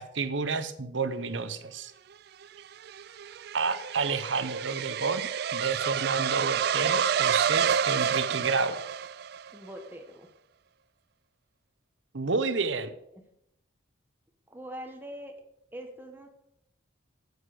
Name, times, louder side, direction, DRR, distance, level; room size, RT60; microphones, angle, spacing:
voice 1, 0.0-1.9 3.5-8.8 12.1-12.9, right 4 dB, 65° right, 11 dB, 0.9 m, -30 dB
sound 1, 2.4-9.5, right 8 dB, 50° right, 0.3 m, -29 dB
voice 2, 9.5-10.3 14.5-15.3 15.7-16.3, equal, 10° right, 3 dB, 1.4 m, -42 dB
9.4 x 8.2 x 6.8 m, 0.79 s
head